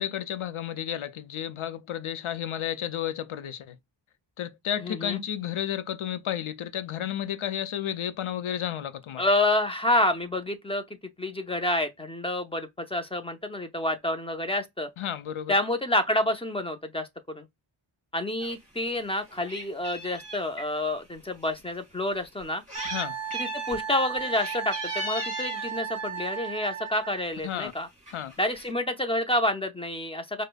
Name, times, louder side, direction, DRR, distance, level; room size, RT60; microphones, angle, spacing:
voice 1, 0.0-3.8 4.4-9.2 15.0-15.5 22.8-23.2 27.4-27.7 28.1-28.3, left 10 dB, 75° left, 0.6 m, -32 dB
voice 2, 4.8-5.2 9.2-10.8 11.2-14.9 15.5-17.1 17.3-17.5 18.1-22.6 23.3-27.9 28.4-30.4, left 1 dB, 10° left, 0.6 m, -28 dB
Meow, 18.4-18.6 19.0-20.7 21.4-21.5 22.4-23.1 23.3-23.8 24.2-25.7 26.7-26.9 27.3-27.4 27.6-27.7 28.1-28.7, equal, 15° right, 2.6 m, -38 dB
Wind instrument woodwind instrument, 22.7-27.2, right 7 dB, 30° right, 0.9 m, -35 dB
4.9 x 2.1 x 2.2 m
wide cardioid pair, 95°, 49 cm